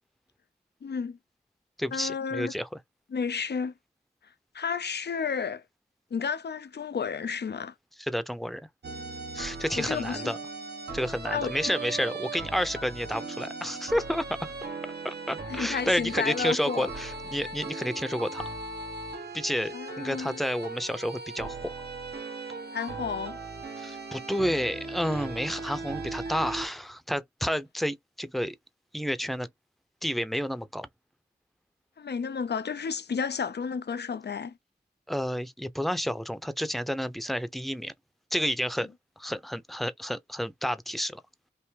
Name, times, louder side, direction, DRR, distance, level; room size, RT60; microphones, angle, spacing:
voice 1, 0.8-1.2 1.9-2.6 3.1-3.7 4.5-5.6 6.1-7.7 9.8-10.3 11.3-11.5 15.5-16.9 19.7-20.4 22.7-23.4 32.0-34.6, left 6 dB, 70° left, 0.5 m, -32 dB
voice 2, 1.8-2.7 8.0-8.6 9.3-10.4 10.9-14.4 15.0-18.4 19.3-21.7 23.8-28.6 28.9-29.5 30.0-30.9 35.1-37.9 38.3-38.9 39.2-41.2, equal, ahead, 0.7 m, -30 dB
sound 1, 8.8-26.7, right 3 dB, 65° right, 1.1 m, -38 dB
3.3 x 2.6 x 4.5 m
cardioid pair, 50°, 18 cm